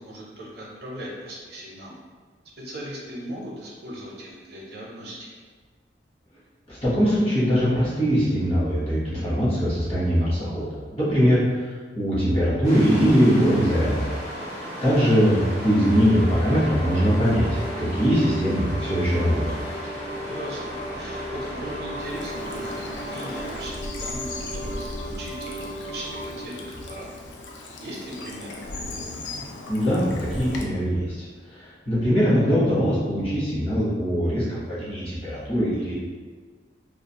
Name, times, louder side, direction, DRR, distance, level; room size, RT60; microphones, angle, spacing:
voice 1, 0.0-2.0 2.6-5.4 15.0-15.3 20.1-27.1 27.5-28.6, equal, 60° right, -3 dB, 0.6 m, -38 dB
voice 2, 6.7-11.4 11.9-14.0 14.8-19.6 29.7-31.2 31.6-35.9, equal, 35° left, -9 dB, 1.0 m, -21 dB
sound 1, 12.6-23.7, equal, 65° left, 1.1 m, -36 dB
sound 2, 13.6-28.1, right 1 dB, 5° left, 0.4 m, -37 dB
Bird vocalization bird call bird song / Stream, 22.0-30.6, left 2 dB, 85° left, 0.4 m, -37 dB
2.4 x 2.3 x 2.8 m, 1.5 s
head